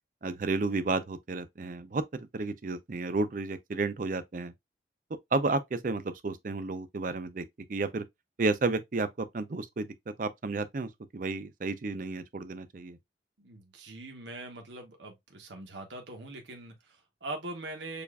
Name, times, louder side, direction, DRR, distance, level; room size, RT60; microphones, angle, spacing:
voice 1, 0.2-4.5 5.3-7.4 7.7-8.0 8.4-13.0, right 3 dB, 45° right, 0.5 m, -32 dB
voice 2, 13.4-18.0, right 2 dB, 80° right, 1.0 m, -42 dB
6.9 x 2.4 x 2.3 m
head